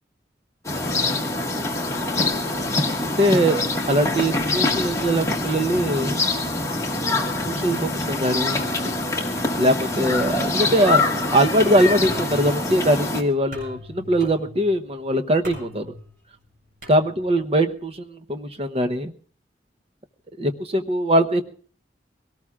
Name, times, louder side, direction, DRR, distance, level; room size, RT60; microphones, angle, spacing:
sound 1, 0.6-13.2, left 2 dB, 15° left, 1.6 m, -25 dB
voice 1, 3.0-3.6 3.9-6.2 7.4-8.6 9.6-15.9 16.9-19.1 20.4-21.4, right 1 dB, 35° right, 7 dB, 0.8 m, -21 dB
sound 2, 10.2-17.6, equal, 50° right, 7.7 m, -43 dB
23.5 x 18.0 x 2.4 m, 0.44 s
head